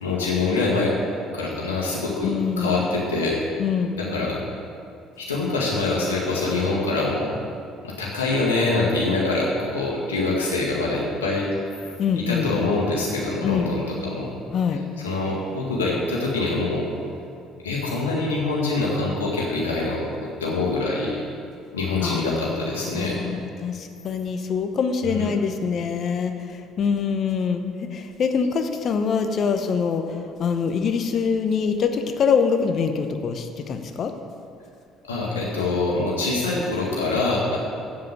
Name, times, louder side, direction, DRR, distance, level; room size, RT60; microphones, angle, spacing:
voice 1, 0.0-0.9 1.3-3.4 3.9-4.4 5.2-7.3 7.8-11.5 12.3-14.3 15.0-16.8 17.6-20.0 20.4-21.2 21.7-23.2 25.0-25.3 35.1-37.6, left 3 dB, 90° left, -5 dB, 1.9 m, -24 dB
voice 2, 2.2-2.8 3.6-4.0 12.0-12.5 13.4-13.7 14.5-14.8 22.0-34.1, left 6 dB, 50° left, 7 dB, 1.0 m, -24 dB
7.6 x 7.6 x 8.4 m, 2.5 s
hypercardioid pair, 60°, 0 cm